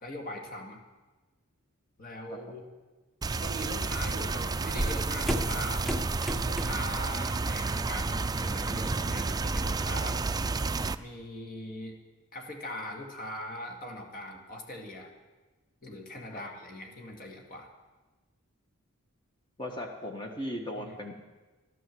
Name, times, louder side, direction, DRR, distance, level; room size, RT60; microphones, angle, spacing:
voice 1, 0.0-0.8 2.0-2.7 3.4-5.9 6.4-10.2 11.0-12.0 12.3-15.1 15.8-17.7 20.8-21.0, left 1 dB, 40° left, 2 dB, 2.2 m, -41 dB
sound 1, 3.2-10.9, right 3 dB, 20° right, 0.4 m, -31 dB
sound 2, 4.8-7.0 7.4-7.7 8.0-9.7, right 1 dB, ahead, 0.9 m, -34 dB
voice 2, 19.6-21.2, left 1 dB, 20° left, 2 dB, 1.5 m, -37 dB
14.0 x 12.0 x 7.8 m, 1.2 s
head